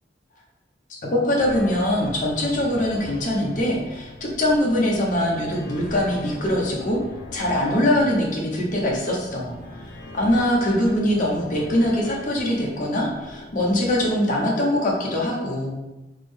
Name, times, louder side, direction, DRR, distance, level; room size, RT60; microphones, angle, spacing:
voice 1, 0.9-7.0 7.3-9.5 9.8-15.7, left 1 dB, 45° left, -2 dB, 0.7 m, -22 dB
sound 1, 1.4-14.1, left 1 dB, 80° left, 0.5 m, -40 dB
3.4 x 2.0 x 3.5 m, 1.1 s
head